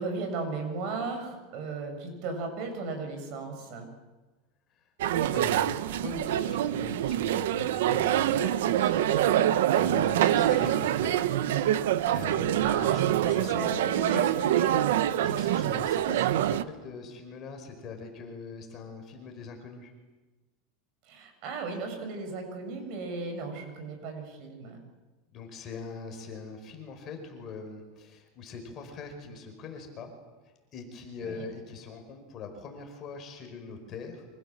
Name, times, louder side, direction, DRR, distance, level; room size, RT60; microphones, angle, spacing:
voice 1, 0.0-3.9 12.6-14.8 21.1-24.8 31.2-31.5, right 3 dB, 45° right, 5 dB, 7.7 m, -36 dB
sound 1, 5.0-16.6, right 12 dB, 80° right, 1.3 m, -25 dB
voice 2, 5.3-11.2 12.1-13.6 15.2-19.9 25.3-30.1 30.7-34.3, left 5 dB, 30° left, 4 dB, 5.1 m, -42 dB
29.5 x 26.0 x 7.6 m, 1.2 s
supercardioid pair, 165°, 0 cm